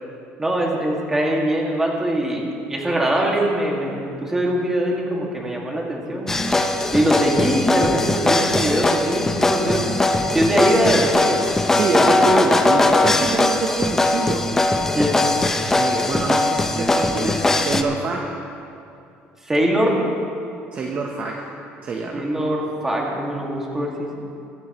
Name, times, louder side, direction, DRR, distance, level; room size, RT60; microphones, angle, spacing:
voice 1, 0.4-2.4 2.7-6.4 6.9-9.9 10.3-11.4 14.9-15.2 19.4-20.0 22.1-24.1, right 1 dB, 10° right, -2 dB, 2.1 m, -22 dB
sound 1, 6.3-17.8, left 2 dB, 10° left, 0.6 m, -20 dB
voice 2, 11.7-14.5 15.7-18.3 20.7-21.5 21.8-22.3, right 3 dB, 35° right, 0 dB, 1.0 m, -25 dB
22.5 x 12.0 x 3.1 m, 2.6 s
cardioid pair, 165°, 4 cm